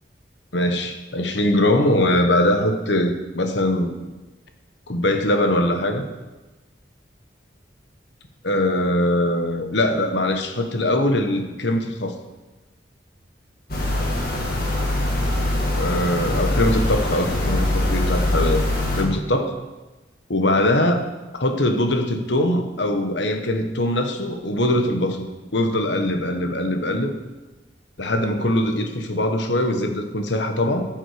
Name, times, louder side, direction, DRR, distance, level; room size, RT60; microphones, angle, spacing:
voice 1, 0.5-4.0 4.9-6.1 8.4-12.1 15.8-18.6 19.0-19.6 20.3-21.0 21.3-27.1 28.0-30.9, left 1 dB, 75° left, 5 dB, 1.3 m, -22 dB
sound 1, 13.7-19.0, left 1 dB, 50° left, 2.2 m, -22 dB
14.0 x 7.4 x 5.0 m, 1.1 s
head